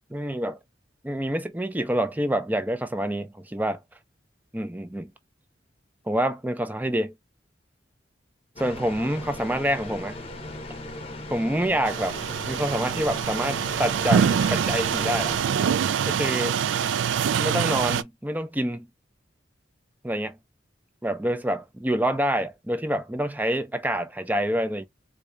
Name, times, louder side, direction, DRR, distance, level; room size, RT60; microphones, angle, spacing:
voice 1, 0.1-0.6 1.0-3.8 4.5-5.1 6.1-7.1 8.6-10.2 11.3-12.2 12.5-15.4 16.1-16.6 17.4-18.9 20.0-20.4 21.0-24.8, right 1 dB, 10° right, 0.5 m, -27 dB
sound 1, 8.6-15.4, left 1 dB, 30° left, 0.8 m, -38 dB
sound 2, 11.9-18.0, right 7 dB, 80° right, 0.3 m, -25 dB
4.7 x 2.7 x 2.2 m
head